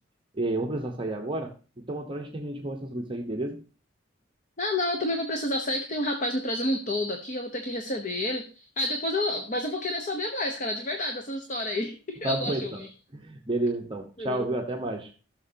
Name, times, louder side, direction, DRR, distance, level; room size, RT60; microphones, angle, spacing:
voice 1, 0.3-3.6 12.2-12.8 13.1-15.1, right 2 dB, 25° right, 1 dB, 0.9 m, -31 dB
voice 2, 4.6-12.9 14.2-14.5, left 1 dB, 40° left, 5 dB, 0.9 m, -30 dB
15.0 x 6.7 x 2.7 m, 0.36 s
head